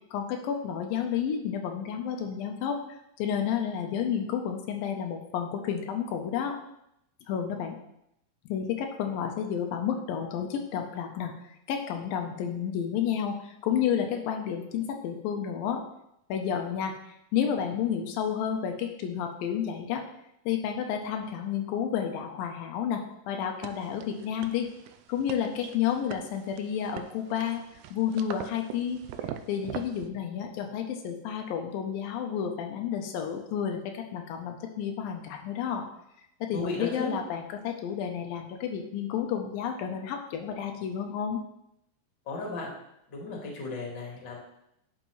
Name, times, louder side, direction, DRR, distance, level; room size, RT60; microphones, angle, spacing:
voice 1, 0.1-6.6 7.3-7.8 8.5-15.8 16.3-20.0 20.5-24.7 25.1-27.6 27.9-29.0 29.5-35.9 36.4-41.4, left 8 dB, 85° left, 3 dB, 2.5 m, -31 dB
sound 1, 23.6-30.1, right 9 dB, 85° right, 1.7 m, -42 dB
voice 2, 36.5-37.1 42.3-42.7 43.1-44.4, left 3 dB, 40° left, -2 dB, 2.1 m, -35 dB
10.5 x 5.8 x 3.1 m, 0.79 s
omnidirectional pair, 4.1 m